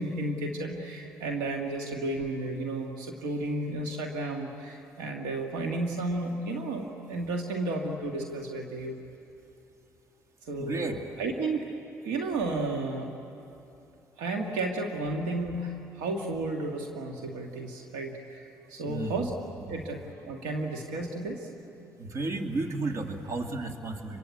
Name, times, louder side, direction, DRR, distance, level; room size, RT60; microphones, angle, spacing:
voice 1, 0.0-9.0 10.4-11.7 12.0-13.1 14.2-19.3 19.7-21.5, right 2 dB, 80° right, 2 dB, 1.8 m, -33 dB
voice 2, 10.5-11.0 18.9-19.2 19.7-19.8 22.0-24.2, right 2 dB, 55° right, 5 dB, 2.3 m, -33 dB
26.5 x 23.0 x 8.4 m, 2.8 s
hypercardioid pair, 60°, 7 cm